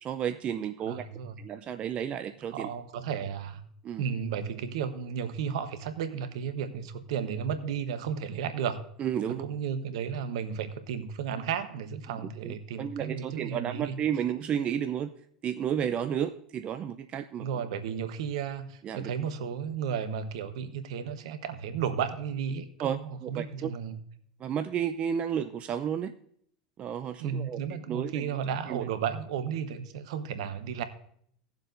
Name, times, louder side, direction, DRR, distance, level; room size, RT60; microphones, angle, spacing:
voice 1, 0.0-1.0 1.4-2.7 3.8-4.0 9.0-9.5 12.4-15.1 15.4-17.7 18.8-19.1 22.8-23.7 24.4-26.1 26.8-27.6 27.9-28.4 28.7-28.9, right 9 dB, 40° right, 9 dB, 0.6 m, -32 dB
voice 2, 0.9-1.4 2.5-3.6 4.0-8.8 9.4-14.0 17.4-24.0 27.2-30.8, right 7 dB, 70° right, 10 dB, 1.0 m, -33 dB
18.0 x 7.2 x 2.6 m, 0.65 s
hypercardioid pair, 85°, 3 cm